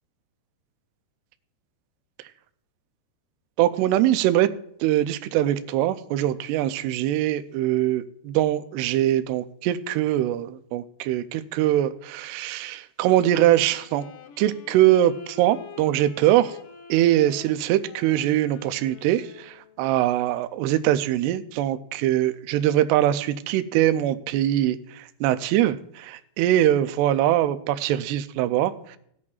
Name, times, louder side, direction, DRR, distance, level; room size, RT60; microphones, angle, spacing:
voice 1, 3.6-4.5 4.8-14.0 14.4-16.6 16.9-29.0, right 13 dB, 80° right, 11 dB, 2.5 m, -22 dB
Wind instrument woodwind instrument, 13.0-19.8, left 7 dB, 70° left, 2.0 m, -47 dB
18.5 x 8.5 x 2.4 m, 0.69 s
omnidirectional pair, 4.9 m